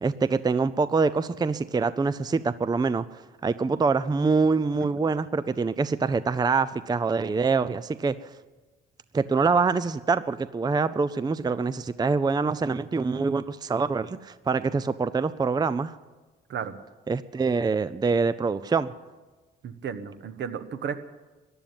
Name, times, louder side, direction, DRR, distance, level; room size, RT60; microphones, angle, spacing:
voice 1, 0.0-8.3 9.1-15.9 17.1-18.9, right 4 dB, 20° right, 14 dB, 0.5 m, -25 dB
voice 2, 19.6-21.0, right 7 dB, 65° right, 10 dB, 1.2 m, -33 dB
15.0 x 11.0 x 8.9 m, 1.2 s
cardioid pair, 90°, 20 cm